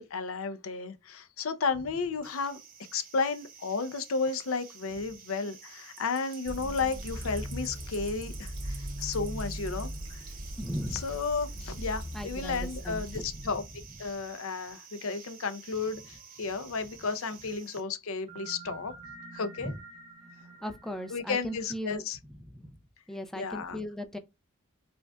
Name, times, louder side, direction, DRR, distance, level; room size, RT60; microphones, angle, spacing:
voice 1, 0.0-2.6 2.9-10.2 10.9-18.9 19.3-19.7 21.1-22.2 23.3-23.8, left 4 dB, 70° left, 0.6 m, -33 dB
sound 1, 2.2-17.8, right 7 dB, 40° right, 1.1 m, -50 dB
Fill (with liquid), 6.4-14.1, equal, 70° right, 1.8 m, -39 dB
voice 2, 10.6-11.0 12.1-13.2 19.6-19.8 20.6-22.0 22.5-22.8 23.1-24.2, equal, ahead, 0.4 m, -37 dB
sound 2, 15.8-17.1 18.3-21.8, right 3 dB, 25° right, 0.7 m, -50 dB
5.0 x 2.4 x 2.2 m
head